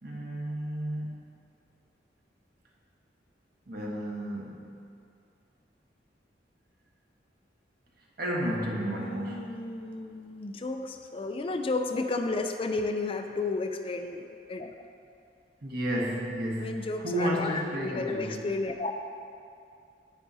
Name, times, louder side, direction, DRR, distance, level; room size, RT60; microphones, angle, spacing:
voice 1, 0.0-1.2 3.7-4.8 8.2-9.6 15.6-18.4, equal, 60° right, -2 dB, 1.3 m, -32 dB
voice 2, 8.8-14.7 16.6-18.9, left 3 dB, 30° left, 5 dB, 0.4 m, -32 dB
10.0 x 9.0 x 2.7 m, 2.5 s
head